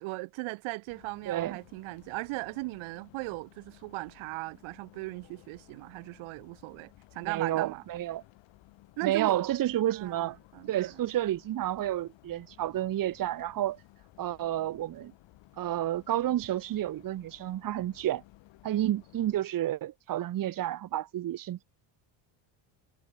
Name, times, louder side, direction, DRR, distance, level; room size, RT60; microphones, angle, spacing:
voice 1, 0.0-7.8 9.0-9.4 10.0-11.0, right 24 dB, 75° right, 2.0 m, -38 dB
sound 1, 0.9-19.4, left 17 dB, 65° left, 7.6 m, -58 dB
voice 2, 1.3-1.6 7.2-8.2 9.0-10.4 10.7-13.8 14.2-15.1 15.6-18.2 18.6-21.6, right 13 dB, 40° right, 1.9 m, -30 dB
cardioid pair, 145°, 49 cm